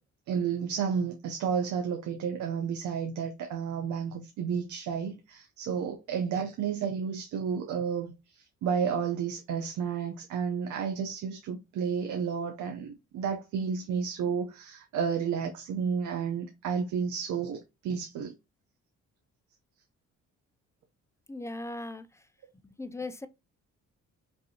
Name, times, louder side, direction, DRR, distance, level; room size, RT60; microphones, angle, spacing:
voice 1, 0.3-18.3, right 7 dB, 75° right, 0.7 m, -31 dB
voice 2, 21.3-22.2 22.6-23.3, left 2 dB, 10° left, 0.4 m, -38 dB
5.3 x 2.6 x 2.8 m
cardioid pair, 90°, 30 cm